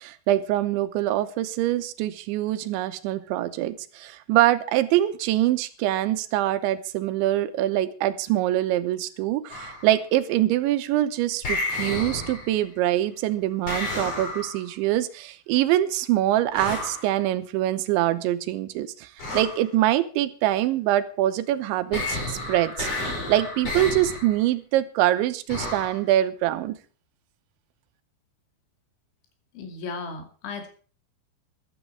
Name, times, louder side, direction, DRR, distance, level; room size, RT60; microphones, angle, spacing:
voice 1, 0.0-22.9 23.3-26.8, right 14 dB, 85° right, 12 dB, 3.3 m, -24 dB
sound 1, 9.5-9.9 11.4-12.7 13.7-14.7 16.6-17.1 19.2-19.7 21.9-24.4 25.5-26.0, left 2 dB, 35° left, 5.5 m, -31 dB
voice 2, 29.5-30.7, left 4 dB, 90° left, 6 dB, 5.0 m, -35 dB
14.5 x 12.0 x 4.6 m, 0.39 s
omnidirectional pair, 5.2 m